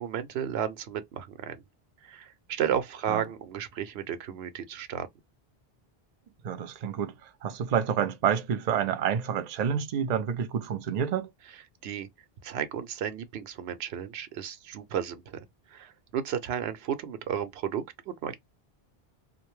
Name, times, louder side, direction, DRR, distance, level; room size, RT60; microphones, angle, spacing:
voice 1, 0.0-1.6 2.0-5.1 11.8-12.1 12.4-15.4 15.7-18.4, right 9 dB, 80° right, 0.8 m, -33 dB
voice 2, 6.4-11.3, right 8 dB, 50° right, 0.5 m, -28 dB
2.5 x 2.1 x 3.0 m
omnidirectional pair, 1.1 m